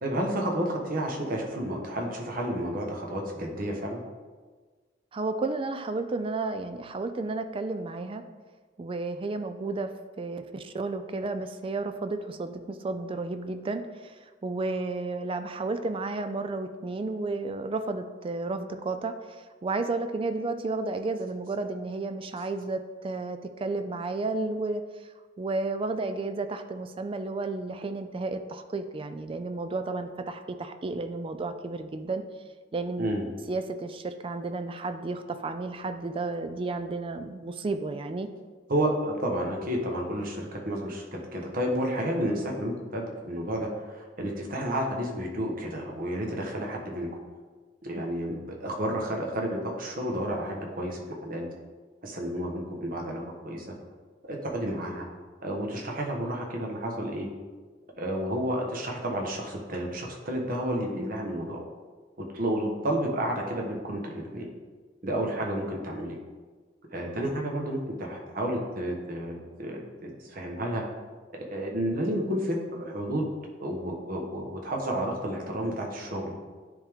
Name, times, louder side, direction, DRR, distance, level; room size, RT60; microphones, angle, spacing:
voice 1, 0.0-4.0 33.0-33.3 38.7-47.1 47.8-51.5 52.0-53.7 54.3-55.0 55.4-57.3 58.0-61.6 62.2-64.5 65.0-66.2 66.9-70.8 71.3-73.2 73.6-76.3, right 1 dB, 50° right, 0 dB, 1.2 m, -31 dB
voice 2, 5.1-8.3 8.8-25.1 25.4-32.2 32.7-33.1 33.5-38.3, right 3 dB, 30° right, 9 dB, 0.4 m, -32 dB
9.9 x 3.6 x 3.5 m, 1.4 s
head